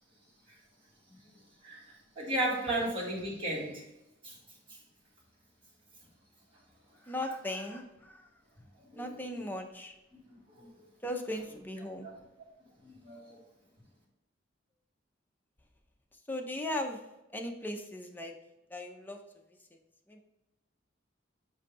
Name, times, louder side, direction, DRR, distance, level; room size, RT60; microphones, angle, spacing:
voice 1, 2.2-3.7 8.9-9.1 10.6-10.7 12.0-12.1 12.8-13.4, right 1 dB, 30° right, -4 dB, 2.0 m, -33 dB
voice 2, 7.0-8.3 8.9-9.9 11.0-12.1 16.3-17.0 17.3-18.3 18.7-19.2 20.1-20.2, left 1 dB, 10° left, 3 dB, 0.7 m, -37 dB
8.0 x 2.7 x 5.3 m, 0.93 s
head